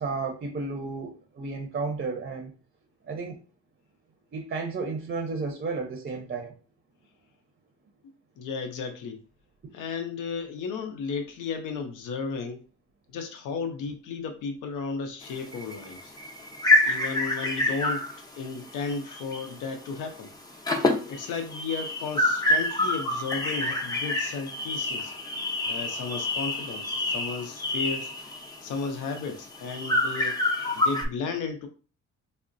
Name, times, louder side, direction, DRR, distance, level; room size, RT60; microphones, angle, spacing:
voice 1, 0.0-2.5 3.1-3.4 4.3-6.5, right 4 dB, 35° right, 0.5 m, -32 dB
voice 2, 8.4-9.2 9.7-12.6 13.1-16.1 16.8-18.1 18.4-20.3 21.1-25.1 25.7-28.1 28.6-30.4 30.8-31.7, left 5 dB, 85° left, 0.6 m, -34 dB
sound 1, 15.2-19.6 19.8-20.1 20.4-31.0, left 1 dB, 15° left, 0.6 m, -27 dB
3.6 x 2.1 x 2.5 m
cardioid pair, 90°, 30 cm